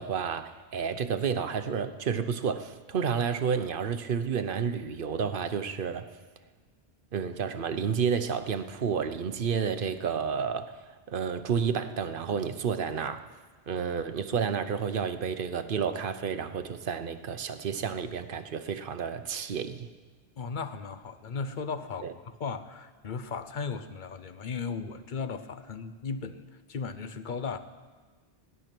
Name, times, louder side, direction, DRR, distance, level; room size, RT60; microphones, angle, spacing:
voice 1, 0.0-6.1 7.1-10.8 11.1-13.3 13.7-19.9 22.0-22.1, right 6 dB, 55° right, 0.9 m, -30 dB
voice 2, 20.4-26.4 26.7-27.6, left 5 dB, 50° left, 0.9 m, -36 dB
16.0 x 12.0 x 6.0 m
omnidirectional pair, 1.1 m